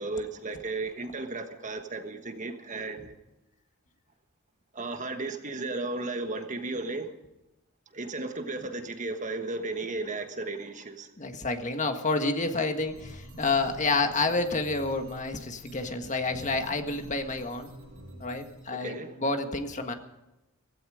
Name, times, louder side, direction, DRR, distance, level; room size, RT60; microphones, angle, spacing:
voice 1, 0.0-3.1 4.7-7.1 7.9-11.1 18.7-19.1, right 3 dB, 35° right, 1.4 m, -34 dB
voice 2, 11.2-17.7 18.2-19.9, left 3 dB, 35° left, 1.7 m, -29 dB
sound 1, 12.8-18.6, equal, 75° right, 7.4 m, -47 dB
16.5 x 16.5 x 5.0 m
head